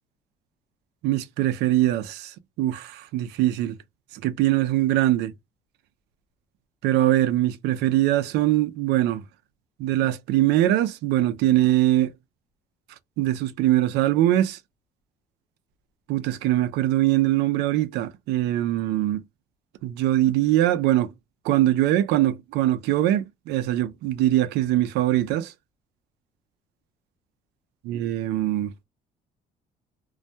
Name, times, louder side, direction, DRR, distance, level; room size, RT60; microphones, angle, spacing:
voice 1, 1.0-3.7 4.1-5.3 6.8-9.2 9.8-12.1 13.2-14.6 16.1-19.2 19.8-21.1 21.4-25.5 27.9-28.8, right 14 dB, 85° right, 0.5 m, -22 dB
2.3 x 2.1 x 2.7 m
cardioid pair, 110°, 17 cm